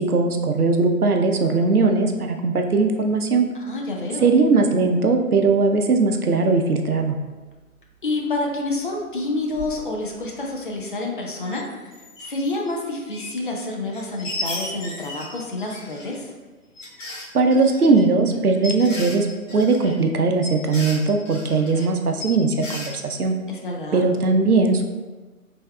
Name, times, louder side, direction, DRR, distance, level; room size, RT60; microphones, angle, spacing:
voice 1, 0.0-3.5 4.2-7.2 17.3-23.4 23.9-24.8, right 3 dB, 85° right, 4 dB, 0.6 m, -19 dB
voice 2, 3.5-4.3 8.0-11.7 12.2-16.3 23.5-24.1, left 2 dB, 35° left, 0 dB, 0.6 m, -28 dB
sound 1, 9.5-9.8 10.2-10.3 10.5-10.6 11.4-12.7 13.1-13.6 13.9-16.1 16.8-21.9 22.2-23.0, left 2 dB, 55° left, 1.1 m, -35 dB
5.2 x 3.5 x 2.3 m, 1.3 s
figure-of-eight pair, 130°, 44 cm